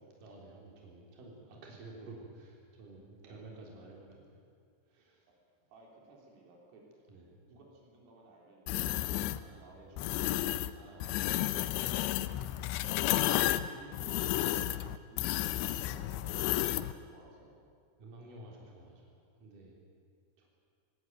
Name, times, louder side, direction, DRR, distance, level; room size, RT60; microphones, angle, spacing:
voice 1, 0.2-4.4 4.9-5.2 7.1-7.3 9.1-10.0 10.7-11.7 18.0-19.8 20.4-20.5, right 2 dB, 45° right, -2 dB, 4.9 m, -52 dB
voice 2, 5.7-6.8 7.5-9.2 9.5-11.2 11.8-12.4 13.7-14.5 15.1-17.6, right 2 dB, 80° right, -1 dB, 6.2 m, -57 dB
sound 1, 8.7-9.4 10.0-10.7 11.0-16.9, left 14 dB, 85° left, 2.6 m, -32 dB
18.5 x 18.5 x 9.3 m, 2.2 s
omnidirectional pair, 5.8 m